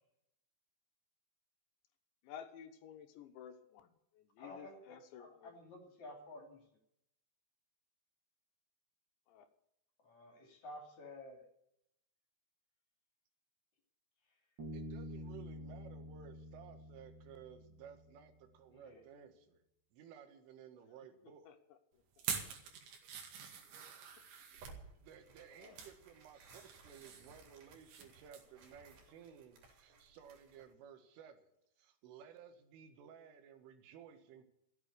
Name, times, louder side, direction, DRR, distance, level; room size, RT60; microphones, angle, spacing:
voice 1, 2.2-3.9 4.1-5.5 9.3-9.5 21.5-21.6 25.6-25.8, left 9 dB, 75° left, 7 dB, 3.3 m, -53 dB
voice 2, 4.4-6.6 10.0-11.4 18.7-19.0, left 1 dB, 45° left, 3 dB, 3.5 m, -52 dB
Bass guitar, 14.6-18.1, equal, 35° right, 2.0 m, -48 dB
voice 3, 14.7-19.6 19.9-21.5 25.0-34.4, right 8 dB, 90° right, 6 dB, 4.2 m, -56 dB
sound 1, 22.2-24.8 25.4-26.0 26.3-28.1 28.3-28.5 28.9-29.0, right 7 dB, 75° right, 4.5 m, -45 dB
Tearing, 24.6-30.7, right 4 dB, 55° right, 4.5 m, -60 dB
14.5 x 8.9 x 9.7 m, 0.78 s
omnidirectional pair, 5.5 m